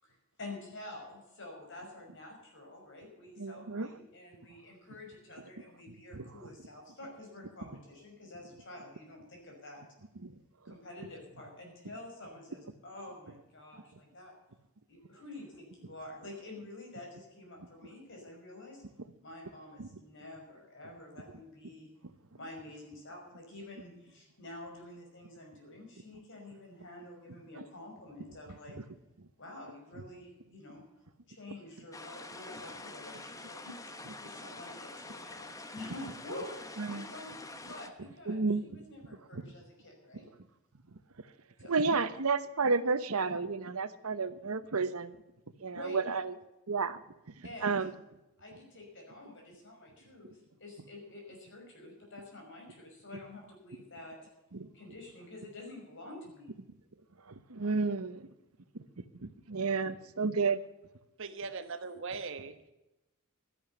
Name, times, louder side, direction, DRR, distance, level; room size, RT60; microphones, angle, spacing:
voice 1, 0.0-9.8 10.6-14.3 14.9-18.8 19.2-21.9 22.4-28.8 29.4-30.8 31.3-33.8 34.2-36.5 36.9-37.4 37.7-40.3 41.6-41.8 45.7-46.0 47.4-47.8 48.4-54.2 54.7-56.5, left 2 dB, 55° left, 1 dB, 5.6 m, -48 dB
voice 2, 3.4-3.9 6.1-6.2 10.2-10.3 19.8-19.9 36.8-37.1 38.3-38.6 39.3-39.4 41.7-45.2 45.6-46.3 46.7-47.0 47.6-47.9 54.5-54.7 57.5-58.3 59.2-60.6, right 4 dB, 80° right, 13 dB, 1.0 m, -31 dB
sound 1, 31.9-37.9, left 2 dB, 15° left, 1.0 m, -46 dB
voice 3, 61.2-62.6, right 4 dB, 60° right, 10 dB, 1.3 m, -39 dB
13.0 x 11.0 x 6.8 m, 0.95 s
head